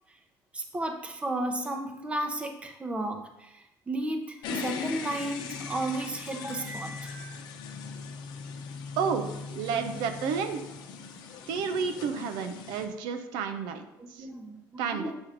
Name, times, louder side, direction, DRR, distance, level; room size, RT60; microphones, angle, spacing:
voice 1, 0.5-7.4 9.7-9.9 14.0-15.1, right 1 dB, 15° right, 5 dB, 0.7 m, -34 dB
sound 1, 4.4-12.8, left 5 dB, 70° left, 0.8 m, -39 dB
voice 2, 9.0-10.6 11.5-13.9 14.1-14.3 14.8-15.1, right 6 dB, 85° right, 7 dB, 0.6 m, -31 dB
7.4 x 3.1 x 4.9 m, 0.89 s
cardioid pair, 135°, 8 cm